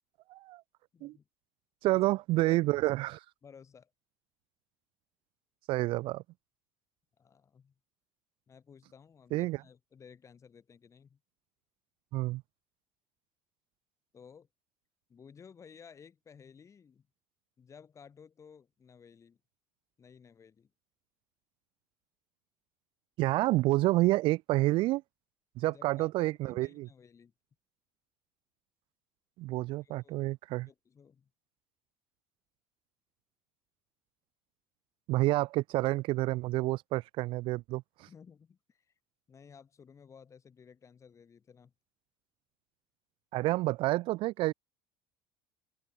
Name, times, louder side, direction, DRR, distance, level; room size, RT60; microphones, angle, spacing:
voice 1, 0.3-0.6 1.0-1.1 1.8-3.2 5.7-6.2 9.3-9.6 12.1-12.4 23.2-25.0 25.6-26.9 29.4-30.7 35.1-37.8 43.3-44.5, right 19 dB, 60° right, 0.4 m, -29 dB
voice 2, 0.9-1.3 1.9-2.1 2.4-2.6 3.4-3.9 7.2-7.7 8.5-11.2 14.1-14.5 15.1-17.1 17.6-19.4 20.0-20.7 25.7-27.3 29.6-30.2 30.6-31.3 38.1-38.9 39.3-41.7, left 6 dB, 30° left, 8.0 m, -56 dB
open air
supercardioid pair, 105°, 10 cm